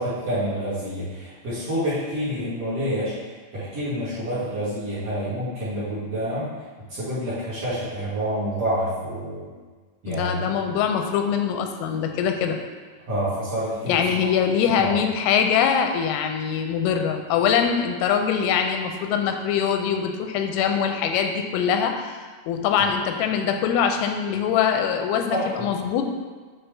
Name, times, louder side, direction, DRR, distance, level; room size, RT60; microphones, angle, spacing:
voice 1, 0.0-3.1 3.5-6.5 6.9-9.5 10.0-10.5 13.1-14.0 14.8-14.9 22.8-22.9 25.3-25.5, equal, 50° right, -13 dB, 2.0 m, -28 dB
voice 2, 10.1-12.6 13.9-22.1 22.5-26.0, left 7 dB, 90° left, 5 dB, 3.2 m, -23 dB
8.1 x 4.2 x 3.4 m, 1.4 s
omnidirectional pair, 5.8 m